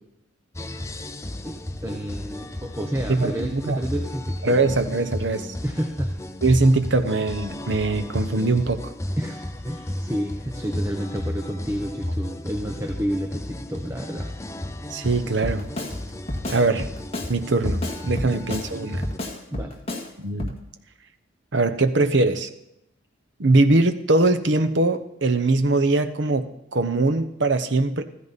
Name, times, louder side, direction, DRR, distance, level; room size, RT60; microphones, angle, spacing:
sound 1, 0.5-19.2, left 1 dB, 15° left, 0.6 m, -33 dB
voice 1, 1.4-4.6 5.6-6.1 9.2-14.3 18.2-18.4 19.5-19.7, equal, 15° right, 4 dB, 0.8 m, -30 dB
voice 2, 3.1-3.8 4.4-5.5 6.4-8.9 14.9-15.6 16.5-16.9 17.3-19.1 20.2-20.5 21.5-22.5 23.4-28.0, right 2 dB, 65° right, 9 dB, 0.9 m, -21 dB
Drum kit, 15.4-16.0 16.3-17.3 17.7-18.7 19.0-20.1 20.4-20.6, left 1 dB, 30° left, 1.8 m, -31 dB
14.5 x 14.0 x 4.2 m, 0.85 s
head